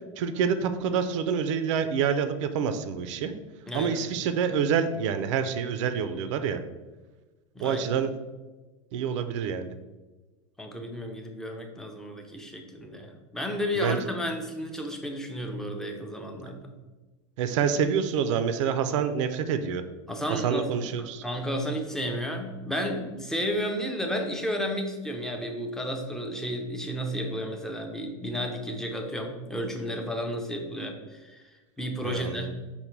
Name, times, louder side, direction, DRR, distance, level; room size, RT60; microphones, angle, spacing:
voice 1, 0.2-3.3 3.7-6.6 7.6-8.1 8.9-9.7 13.8-14.0 17.4-19.8 20.3-21.2 32.0-32.5, right 7 dB, 70° right, 10 dB, 0.4 m, -27 dB
voice 2, 3.7-4.0 7.5-7.8 10.6-16.7 20.1-32.5, equal, 5° left, 2 dB, 0.5 m, -32 dB
5.4 x 2.2 x 4.5 m, 1.2 s
supercardioid pair, 145°, 16 cm